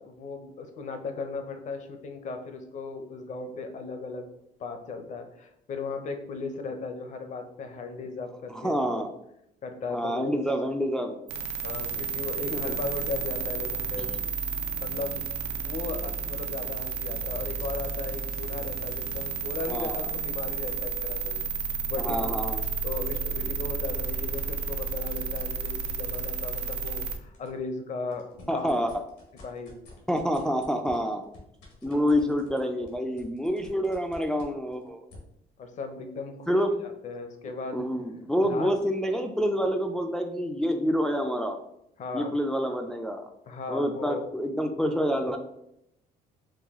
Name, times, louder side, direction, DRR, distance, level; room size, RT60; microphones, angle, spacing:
voice 1, 0.0-4.3 4.6-9.1 9.6-10.4 11.6-14.1 14.7-15.2 15.5-22.3 22.8-28.8 29.4-29.8 35.6-36.6 36.8-37.9 38.4-38.7 42.0-42.4 43.5-44.2, left 4 dB, 45° left, 6 dB, 0.6 m, -37 dB
voice 2, 8.5-9.1 9.9-11.2 12.5-12.7 19.7-20.0 22.0-22.6 28.5-28.9 30.1-31.2 31.8-35.0 36.5-36.7 37.7-41.6 42.1-43.3 43.7-45.4, equal, 5° left, 4 dB, 0.3 m, -27 dB
sound 1, 11.3-27.2, right 5 dB, 80° right, 0.5 m, -32 dB
sound 2, 16.8-21.7 22.1-27.6 28.0-35.2, left 3 dB, 90° left, 1.4 m, -53 dB
4.8 x 2.2 x 3.5 m, 0.78 s
cardioid pair, 110°, 17 cm